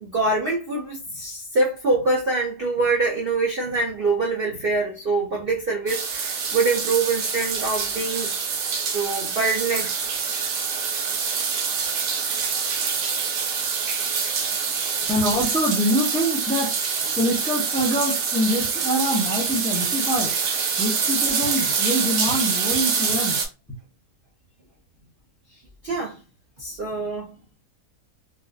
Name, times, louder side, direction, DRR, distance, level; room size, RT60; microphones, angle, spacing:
voice 1, 0.0-8.3 8.8-9.9 12.8-12.9 25.8-26.2 26.6-27.4, right 3 dB, 55° right, 0.6 m, -24 dB
sound 1, 5.9-23.5, right 6 dB, 90° right, 1.4 m, -25 dB
voice 2, 15.1-23.4, equal, 10° left, 0.5 m, -25 dB
3.8 x 2.5 x 2.3 m
omnidirectional pair, 1.8 m